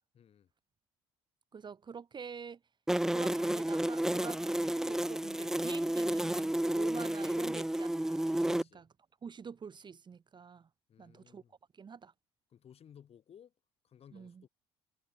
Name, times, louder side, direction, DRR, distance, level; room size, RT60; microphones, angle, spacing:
voice 1, 0.1-0.5 8.5-8.8 10.9-11.5 12.5-13.5 13.8-14.5, left 9 dB, 45° left, 2.8 m, -58 dB
voice 2, 1.5-2.6 3.1-8.9 9.2-10.7 11.0-11.4 11.7-12.1 14.1-14.4, right 6 dB, 30° right, 1.3 m, -47 dB
sound 1, 2.9-8.6, right 1 dB, 5° right, 0.4 m, -31 dB
hypercardioid pair, 55°, 14 cm